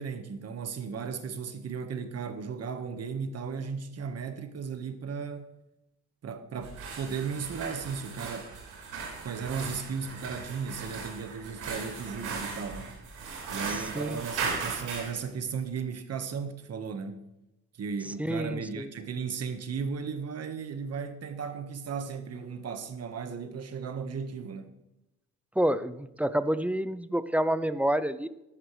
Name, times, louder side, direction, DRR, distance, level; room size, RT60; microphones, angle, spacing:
voice 1, 0.0-5.5 6.2-8.5 9.2-12.9 13.5-17.3 17.8-24.7, right 6 dB, 55° right, 1.5 m, -36 dB
sound 1, 6.6-15.1, right 5 dB, 85° right, 4.5 m, -37 dB
voice 2, 13.7-14.2 18.2-18.9 25.6-28.3, right 1 dB, 5° right, 0.6 m, -28 dB
15.0 x 11.0 x 3.3 m
cardioid pair, 90°, 30 cm